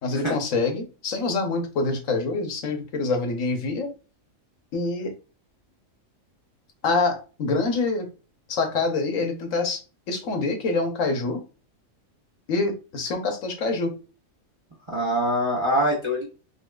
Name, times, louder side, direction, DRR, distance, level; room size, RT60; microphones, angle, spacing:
voice 1, 0.0-3.9 4.7-5.1 6.8-8.1 8.5-9.8 10.1-11.4 12.5-13.9, left 3 dB, 70° left, 5 dB, 1.3 m, -26 dB
voice 2, 14.9-16.2, equal, 25° right, -3 dB, 1.0 m, -24 dB
5.4 x 3.0 x 2.4 m, 0.33 s
omnidirectional pair, 1.4 m